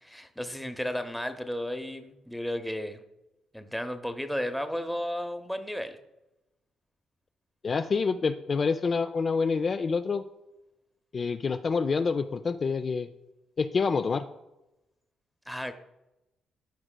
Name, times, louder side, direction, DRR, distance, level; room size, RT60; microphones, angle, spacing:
voice 1, 0.0-3.0 3.5-6.0 15.5-15.7, equal, ahead, 8 dB, 0.7 m, -33 dB
voice 2, 7.6-10.2 11.1-13.1 13.6-14.2, left 5 dB, 40° left, 8 dB, 0.3 m, -27 dB
13.5 x 4.8 x 2.2 m, 0.94 s
cardioid pair, 90°, 0 cm